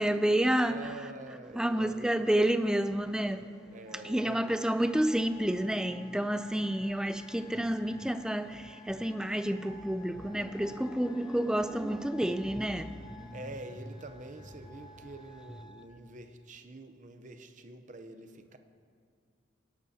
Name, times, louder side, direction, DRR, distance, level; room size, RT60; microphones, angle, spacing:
voice 1, 0.0-0.9 1.6-3.5 4.0-13.4, right 1 dB, 5° right, 0.4 m, -29 dB
voice 2, 0.6-2.5 3.7-4.5 13.3-18.6, right 2 dB, 45° right, 0.7 m, -46 dB
Wind instrument woodwind instrument, 3.8-15.9, left 2 dB, 20° left, 0.9 m, -54 dB
20.0 x 11.0 x 2.8 m
head